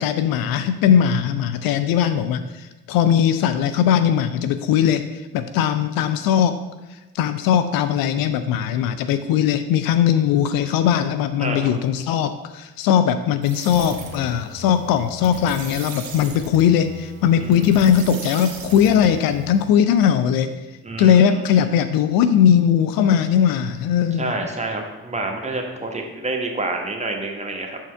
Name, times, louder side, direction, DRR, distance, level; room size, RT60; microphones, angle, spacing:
voice 1, 0.0-6.6 6.9-24.3, left 9 dB, 60° left, 10 dB, 0.5 m, -19 dB
voice 2, 11.4-11.7 17.4-17.9 20.8-21.3 24.2-27.8, right 2 dB, 15° right, 1 dB, 1.2 m, -28 dB
sound 1, 13.4-19.8, right 3 dB, 55° right, 1.3 m, -38 dB
7.3 x 4.4 x 3.4 m, 1.1 s
hypercardioid pair, 55°, 40 cm